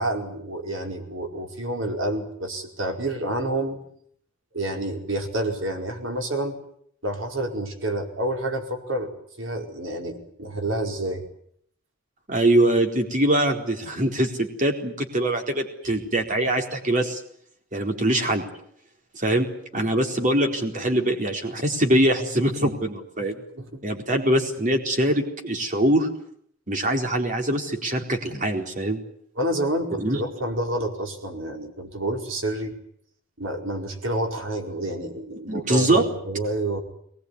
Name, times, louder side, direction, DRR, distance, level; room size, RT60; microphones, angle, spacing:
voice 1, 0.0-3.8 4.5-6.5 7.0-11.2 15.8-16.0 23.2-23.3 23.6-23.8 29.4-32.7 33.4-36.8, right 1 dB, 80° right, 4 dB, 4.9 m, -29 dB
voice 2, 12.3-17.2 17.7-18.4 19.1-19.5 19.7-23.4 23.8-26.1 26.7-29.0 30.0-30.2 35.5-36.0, right 1 dB, 40° right, 4 dB, 4.3 m, -23 dB
22.5 x 20.5 x 9.7 m, 0.66 s
head